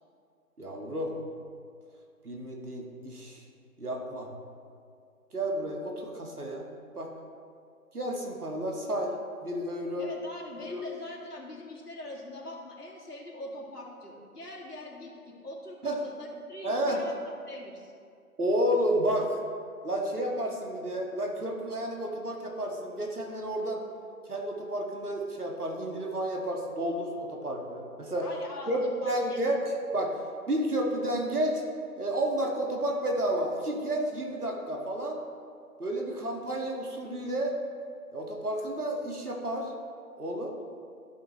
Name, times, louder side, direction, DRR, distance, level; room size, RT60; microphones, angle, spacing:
voice 1, 0.6-1.2 2.2-3.4 3.8-4.3 5.3-7.1 7.9-9.1 9.4-10.1 10.6-10.8 15.8-16.0 16.6-17.0 18.4-19.4 19.8-23.8 24.3-28.3 28.7-29.6 29.9-30.2 30.5-31.6 32.0-35.2 35.8-37.6 38.1-39.7 40.2-40.5, right 1 dB, 70° right, 0 dB, 1.8 m, -31 dB
voice 2, 10.0-17.2 17.5-17.9 28.2-29.5, left 1 dB, 80° left, -3 dB, 2.1 m, -42 dB
13.5 x 5.9 x 3.0 m, 2.4 s
figure-of-eight pair, 155°, 46 cm